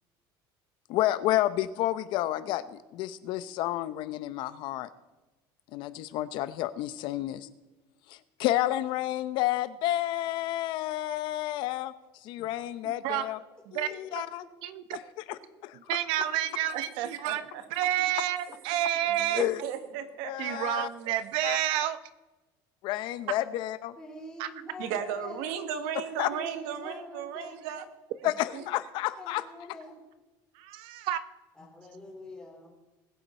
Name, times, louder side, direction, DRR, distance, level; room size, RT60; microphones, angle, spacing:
voice 1, 0.9-4.9 5.7-7.5 8.1-11.9 12.2-13.4 13.7-14.4 15.3-15.8 19.4-19.6 20.2-20.9 21.4-21.6 22.8-24.0 26.2-26.3 28.2-29.4, left 14 dB, 60° left, 14 dB, 0.8 m, -30 dB
voice 2, 12.8-13.2 13.7-13.9 14.2-14.3 14.6-15.0 15.7-17.4 17.7-19.4 20.4-22.0 24.4-24.5 30.5-31.2, right 12 dB, 65° right, 13 dB, 0.9 m, -30 dB
voice 3, 16.7-17.6 18.5-18.6 19.1-21.1 24.8-27.9 28.2-28.6, right 8 dB, 85° right, 8 dB, 1.5 m, -36 dB
voice 4, 24.0-25.6 26.2-27.7 28.6-28.7 29.2-30.0 31.6-32.7, left 2 dB, 10° left, -2 dB, 3.7 m, -45 dB
20.0 x 8.2 x 4.4 m, 1.1 s
cardioid pair, 155°, 9 cm